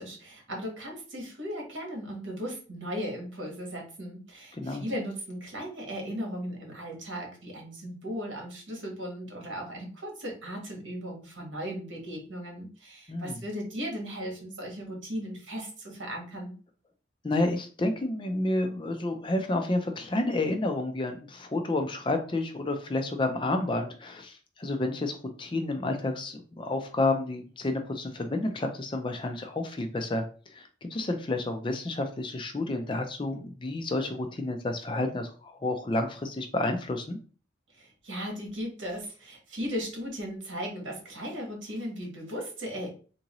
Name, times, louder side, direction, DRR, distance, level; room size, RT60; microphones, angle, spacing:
voice 1, 0.0-16.5 37.7-42.9, equal, 80° right, 1 dB, 1.3 m, -37 dB
voice 2, 4.5-4.8 13.1-13.4 17.2-37.2, left 2 dB, 25° left, 6 dB, 0.4 m, -30 dB
3.6 x 2.6 x 2.9 m, 0.39 s
head